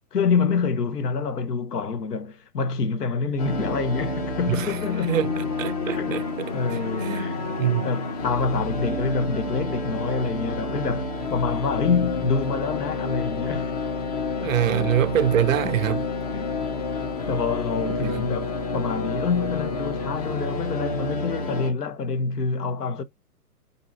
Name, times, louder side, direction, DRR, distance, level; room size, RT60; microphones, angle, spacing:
voice 1, 0.1-5.3 5.9-6.2 6.5-7.5 7.8-13.8 14.4-14.5 16.3-16.8 17.3-23.0, left 5 dB, 85° left, 0.9 m, -27 dB
sound 1, 3.4-21.7, left 3 dB, 25° left, 0.5 m, -29 dB
voice 2, 4.5-7.3 7.6-7.9 14.4-16.0 18.0-18.3, right 11 dB, 60° right, 0.5 m, -25 dB
2.7 x 2.6 x 4.3 m
hypercardioid pair, 140°, 46 cm